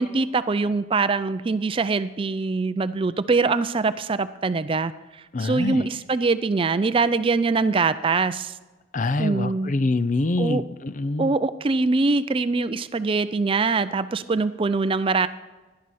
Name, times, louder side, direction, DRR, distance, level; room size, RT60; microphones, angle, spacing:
voice 1, 0.0-8.6 9.2-9.7 10.4-10.6 11.2-15.3, right 3 dB, 30° right, 13 dB, 0.4 m, -23 dB
voice 2, 5.3-5.8 8.9-11.3, left 2 dB, 40° left, 15 dB, 0.5 m, -25 dB
11.5 x 11.0 x 4.2 m, 1.2 s
head